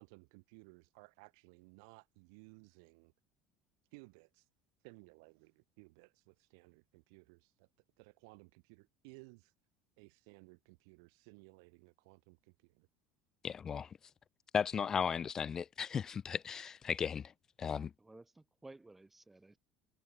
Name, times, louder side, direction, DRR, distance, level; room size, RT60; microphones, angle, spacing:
voice 1, 0.0-3.1 3.9-4.5 4.8-7.7 8.0-9.5 10.0-12.9, right 31 dB, 85° right, 4.9 m, -59 dB
voice 2, 13.4-13.9 14.5-17.3 17.6-17.9, left 7 dB, 25° left, 0.4 m, -35 dB
voice 3, 18.0-19.6, right 2 dB, 10° right, 4.2 m, -56 dB
cardioid pair, 160°, 2 cm